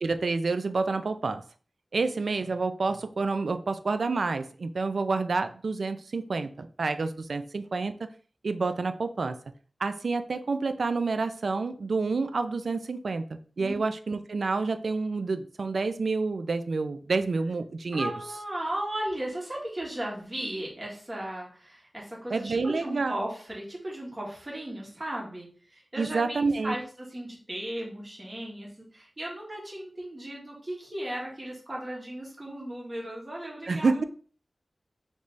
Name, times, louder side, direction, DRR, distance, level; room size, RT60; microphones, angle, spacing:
voice 1, 0.0-1.4 1.9-7.9 8.4-9.4 9.8-18.1 22.3-23.2 26.0-26.7 33.7-34.0, right 4 dB, 80° right, 10 dB, 0.4 m, -28 dB
voice 2, 17.9-34.1, right 1 dB, 30° right, -3 dB, 1.7 m, -36 dB
3.4 x 3.1 x 4.0 m, 0.43 s
wide cardioid pair, 80°, 0 cm